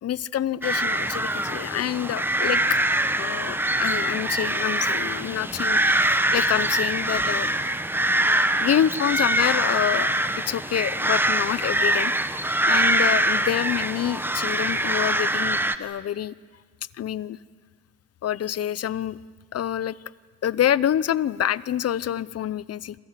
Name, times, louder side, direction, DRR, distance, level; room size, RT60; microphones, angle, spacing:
voice 1, 0.0-2.8 3.2-7.5 8.6-10.1 10.5-12.3 12.7-16.3 17.0-17.4 18.2-19.2 19.5-19.9 20.4-23.0, left 10 dB, 55° left, 19 dB, 0.8 m, -27 dB
sound 1, 0.6-15.8, right 1 dB, 5° right, 1.2 m, -24 dB
27.5 x 26.5 x 7.4 m, 1.5 s
cardioid pair, 90°, 30 cm